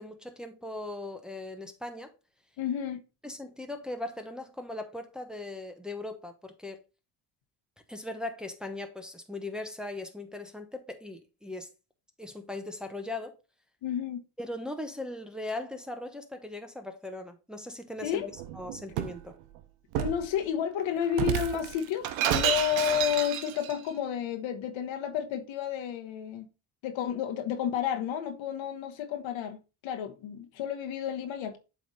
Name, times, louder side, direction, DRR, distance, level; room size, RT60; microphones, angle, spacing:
voice 1, 0.0-2.1 3.2-6.8 7.9-11.7 12.2-13.4 14.4-19.3, left 2 dB, ahead, 1.1 m, -39 dB
voice 2, 2.6-3.0 13.8-14.2 18.0-18.3 19.9-26.5 26.8-31.6, left 9 dB, 65° left, 1.2 m, -31 dB
Shatter, 18.3-19.2 19.9-20.3 21.1-23.7, right 11 dB, 80° right, 0.9 m, -30 dB
7.5 x 3.6 x 4.0 m
supercardioid pair, 80°, 49 cm